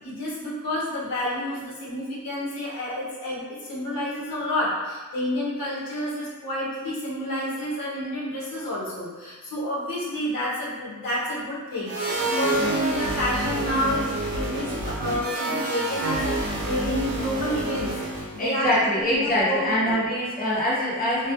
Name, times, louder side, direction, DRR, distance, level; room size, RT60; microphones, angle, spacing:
voice 1, 0.0-20.2, left 1 dB, 85° left, -6 dB, 0.7 m, -29 dB
sound 1, 11.9-18.4, right 2 dB, 85° right, 0.7 m, -28 dB
voice 2, 18.4-21.3, equal, 25° left, -8 dB, 0.6 m, -24 dB
2.2 x 2.1 x 2.8 m, 1.3 s
wide cardioid pair, 160°, 33 cm